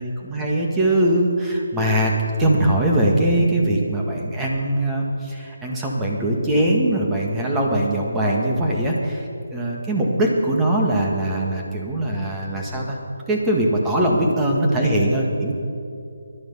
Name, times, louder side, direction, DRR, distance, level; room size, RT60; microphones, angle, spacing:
voice 1, 0.0-2.1 2.4-13.0 13.3-15.5, right 1 dB, 10° right, -2 dB, 2.0 m, -21 dB
20.5 x 12.0 x 5.7 m, 2.5 s
figure-of-eight pair, 160°, 0 cm